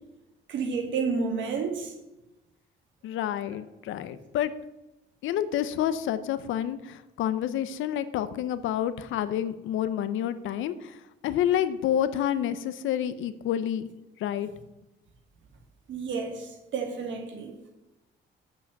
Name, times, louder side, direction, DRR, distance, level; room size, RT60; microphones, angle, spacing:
voice 1, 0.5-1.9 15.9-17.5, right 5 dB, 70° right, 4 dB, 2.0 m, -30 dB
voice 2, 3.0-4.5 5.2-11.0 11.2-13.9 14.2-14.5, left 10 dB, 85° left, 13 dB, 0.7 m, -28 dB
7.8 x 5.8 x 7.2 m, 0.97 s
cardioid pair, 90°, 20 cm